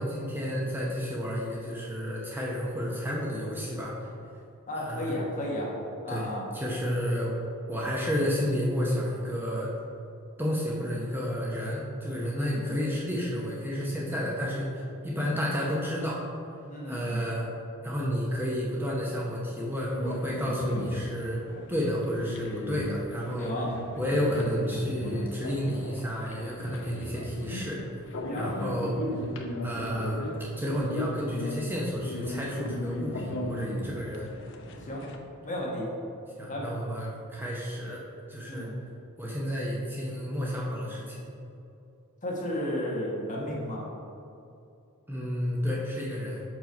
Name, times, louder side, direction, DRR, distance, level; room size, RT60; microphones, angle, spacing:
voice 1, 0.0-4.1 4.8-5.2 6.1-6.3 6.5-7.3 7.7-9.7 10.4-16.2 16.9-17.5 17.8-21.4 21.7-23.5 24.0-27.8 28.3-29.0 29.6-30.2 30.6-34.3 36.4-38.0 38.3-38.7 39.2-41.3 45.1-46.4, equal, 10° right, -4 dB, 0.7 m, -31 dB
voice 2, 4.7-5.7 6.0-6.4 12.4-12.8 15.2-15.4 16.7-17.2 23.4-23.7 28.3-28.5 34.8-35.0 35.4-35.9 36.5-36.7 38.5-38.7 42.2-43.8, left 1 dB, 35° left, -3 dB, 1.3 m, -33 dB
sound 1, 19.9-35.2, left 1 dB, 60° left, 0.7 m, -36 dB
5.8 x 4.7 x 5.2 m, 2.6 s
head